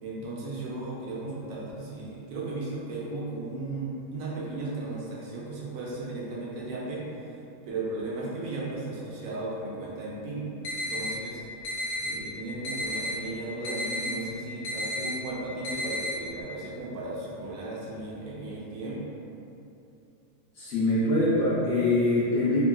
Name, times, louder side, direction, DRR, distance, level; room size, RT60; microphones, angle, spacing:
voice 1, 0.0-7.4 7.6-10.5 10.7-11.4 11.9-19.0, right 2 dB, 70° right, -5 dB, 1.0 m, -36 dB
sound 1, 10.6-11.1 11.6-12.1 12.6-13.1 13.6-14.1 14.6-15.1 15.6-16.1, left 1 dB, 80° left, 1.1 m, -31 dB
voice 2, 20.6-22.6, left 2 dB, 60° left, -12 dB, 0.7 m, -24 dB
2.9 x 2.4 x 2.2 m, 2.7 s
omnidirectional pair, 1.6 m